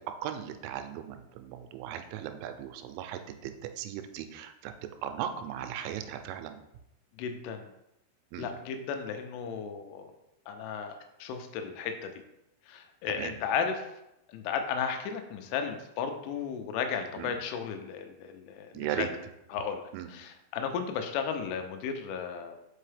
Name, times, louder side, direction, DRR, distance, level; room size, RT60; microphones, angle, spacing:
voice 1, 0.0-3.5 3.8-4.7 5.0-6.6 8.3-8.5 13.2-13.3 17.2-17.3 18.7-19.1 19.9-20.1, right 10 dB, 85° right, 8 dB, 3.0 m, -37 dB
voice 2, 7.2-7.7 8.4-10.1 10.5-11.0 11.2-12.1 12.7-13.9 14.3-19.1 19.5-22.6, left 6 dB, 85° left, 6 dB, 3.0 m, -34 dB
5.7 x 5.4 x 3.3 m, 0.87 s
omnidirectional pair, 5.6 m